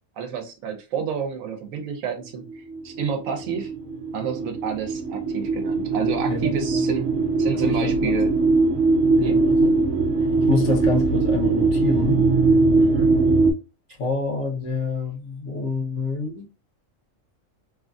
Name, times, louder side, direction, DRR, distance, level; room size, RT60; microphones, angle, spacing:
voice 1, 0.2-3.7 4.1-7.1 7.4-8.3 9.2-9.4 12.8-13.1, right 7 dB, 85° right, 1.1 m, -30 dB
sound 1, 2.5-13.5, right 3 dB, 65° right, 0.8 m, -21 dB
voice 2, 7.5-8.2 9.2-9.7 10.5-12.3 14.0-16.5, left 3 dB, 65° left, 1.1 m, -27 dB
3.1 x 2.5 x 2.3 m
omnidirectional pair, 1.4 m